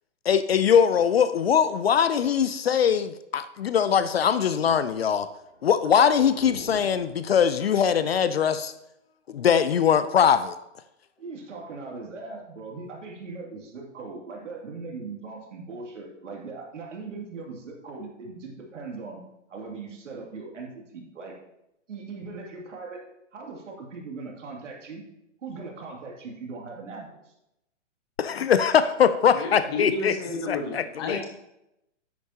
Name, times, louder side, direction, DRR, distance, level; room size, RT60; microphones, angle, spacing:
voice 1, 0.3-5.3 5.6-8.7 9.3-10.6 28.2-30.1 30.5-31.2, left 7 dB, 55° left, 13 dB, 0.5 m, -22 dB
sound 1, 5.4-8.1, right 2 dB, 55° right, 3.7 m, -47 dB
voice 2, 11.2-19.2 19.5-21.4 21.9-23.0 23.3-25.0 25.4-27.3, right 4 dB, 75° right, 0 dB, 2.6 m, -39 dB
voice 3, 29.3-31.3, left 3 dB, 20° left, 3 dB, 1.0 m, -32 dB
10.5 x 8.3 x 2.9 m, 0.86 s
hypercardioid pair, 175°, 37 cm